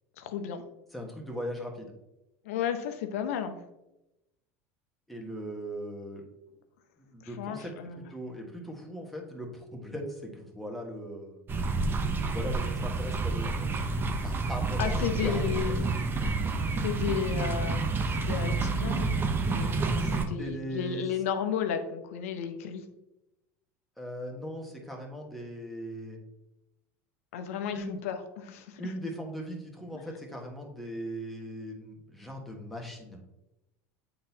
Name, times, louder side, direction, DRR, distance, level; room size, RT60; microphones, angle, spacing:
voice 1, 0.2-0.6 2.4-3.6 7.2-8.0 14.8-15.8 16.8-22.8 27.3-28.9 29.9-30.0, left 8 dB, 80° left, 8 dB, 0.7 m, -33 dB
voice 2, 0.9-1.9 5.1-6.2 7.1-11.4 12.3-13.7 14.2-15.7 20.4-21.0 24.0-26.2 27.7-28.0 28.8-33.2, equal, ahead, -1 dB, 1.4 m, -39 dB
sound 1, 11.5-20.3, right 3 dB, 30° right, 0.8 m, -29 dB
8.6 x 3.9 x 2.8 m, 0.94 s
supercardioid pair, 100°, 8 cm